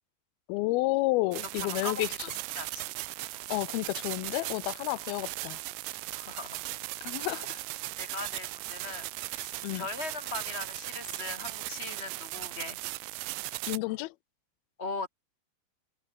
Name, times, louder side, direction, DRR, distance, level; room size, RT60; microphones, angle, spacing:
voice 1, 0.5-2.1 3.5-5.6 7.0-7.6 9.6-9.9 13.7-14.1, left 21 dB, 85° left, 2.2 m, -30 dB
sound 1, 1.3-13.8, right 20 dB, 90° right, 3.2 m, -38 dB
voice 2, 1.5-2.9 3.3-3.5 5.0-5.2 6.1-6.6 7.2-7.4 8.0-12.8 14.8-15.1, left 3 dB, 20° left, 2.2 m, -40 dB
open air
omnidirectional pair, 5.2 m